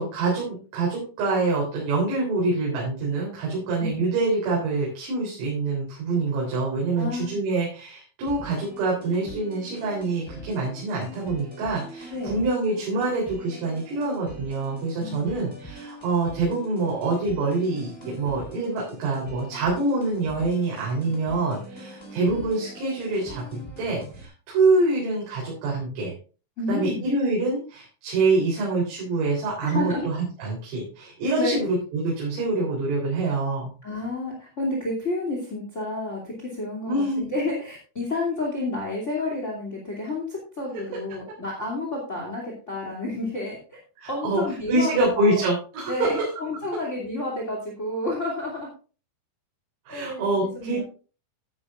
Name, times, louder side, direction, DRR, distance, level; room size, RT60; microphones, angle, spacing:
voice 1, 0.0-26.1 26.7-33.7 36.9-37.3 44.0-44.4 44.7-46.2 49.9-50.8, right 3 dB, 75° right, -4 dB, 6.4 m, -25 dB
voice 2, 6.9-7.3 12.1-12.4 15.0-15.3 26.6-27.0 29.6-30.1 31.4-31.6 33.8-43.8 44.1-45.4 45.9-48.7 49.9-50.3 50.5-50.8, left 2 dB, 25° left, -1 dB, 1.8 m, -30 dB
sound 1, 8.3-24.3, equal, 5° left, 3.1 m, -43 dB
14.5 x 10.5 x 2.5 m, 0.36 s
omnidirectional pair, 5.9 m